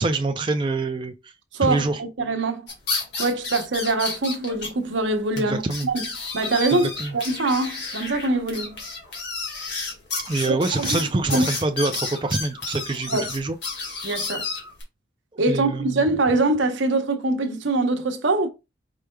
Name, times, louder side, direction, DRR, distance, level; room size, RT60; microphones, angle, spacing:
voice 1, 0.0-1.3 1.6-2.0 5.4-5.9 6.7-7.2 10.2-13.6 15.5-16.0, right 3 dB, 25° right, 0.4 m, -25 dB
voice 2, 1.5-2.7 3.2-6.0 6.3-8.8 10.5-11.0 11.3-11.5 13.1-13.3 14.0-14.5 15.4-18.5, right 2 dB, 85° right, 0.9 m, -23 dB
sound 1, 2.7-4.7 5.0-5.1 5.4-5.5 5.7-14.8, left 3 dB, 65° left, 1.9 m, -31 dB
4.9 x 4.5 x 2.2 m
head